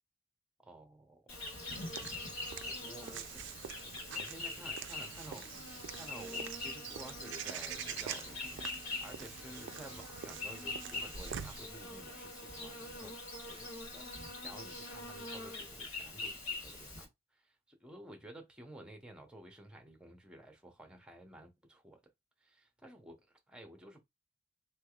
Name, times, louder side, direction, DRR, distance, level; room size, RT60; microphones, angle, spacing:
voice 1, 0.6-1.4 2.6-3.5 4.1-5.5 5.9-13.2 13.4-22.0 22.4-23.2 23.5-24.0, right 1 dB, 5° right, 0.7 m, -53 dB
Insect, 1.3-17.0, left 2 dB, 70° left, 2.0 m, -43 dB
Walk footsteps / Bird vocalization bird call bird song, 1.7-11.7, right 9 dB, 55° right, 0.3 m, -46 dB
3.3 x 3.2 x 2.3 m
head